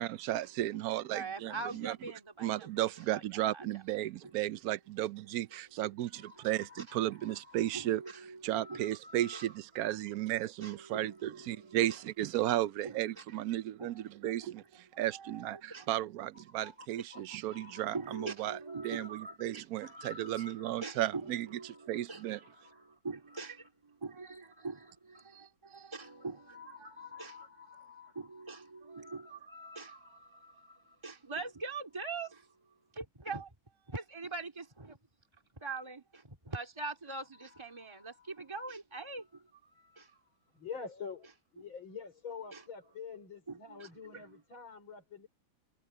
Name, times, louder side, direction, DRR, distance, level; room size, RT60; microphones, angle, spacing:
voice 1, 0.0-2.0 2.4-8.0 8.4-18.6 18.8-21.5 21.9-22.4, right 14 dB, 80° right, 0.8 m, -34 dB
voice 2, 1.1-2.7 3.1-3.2 3.5-3.7 6.5-9.5 10.6-11.5 11.9-12.0 12.8-13.0 13.8-13.9 15.1-15.4 15.7-15.8 16.6-16.7 17.1-17.2 17.5-19.3 19.8-21.8 22.1-22.2 23.0-23.6 24.0-24.8 25.9-28.6 28.9-30.0 31.0-32.3 33.0-33.5 33.9-34.9 35.6-36.0 36.5-39.2 42.5-42.6 43.5-43.9, right 3 dB, 15° right, 2.7 m, -43 dB
voice 3, 40.5-45.3, left 6 dB, 75° left, 5.8 m, -45 dB
omnidirectional pair, 2.2 m